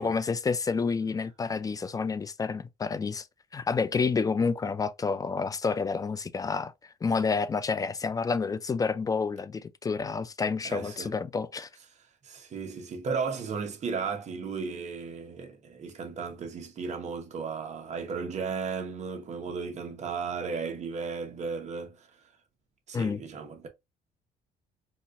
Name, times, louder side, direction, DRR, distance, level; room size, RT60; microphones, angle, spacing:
voice 1, 0.0-3.3 3.5-6.7 7.0-11.7 22.9-23.2, left 5 dB, 20° left, 0.3 m, -29 dB
voice 2, 10.6-11.1 12.2-22.1 22.9-23.7, right 5 dB, 45° right, 1.0 m, -35 dB
4.0 x 2.4 x 2.4 m
cardioid pair, 110°, 17 cm